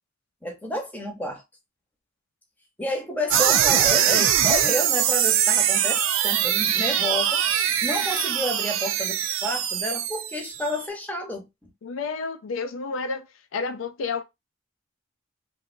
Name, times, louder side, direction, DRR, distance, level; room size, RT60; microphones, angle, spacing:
voice 1, 0.4-1.4 2.8-7.4 7.8-11.7, left 1 dB, 10° left, 0.8 m, -30 dB
sound 1, 3.3-10.8, right 10 dB, 80° right, 0.4 m, -22 dB
voice 2, 11.8-13.3 13.5-14.2, left 4 dB, 75° left, 0.4 m, -30 dB
3.2 x 2.6 x 2.5 m
head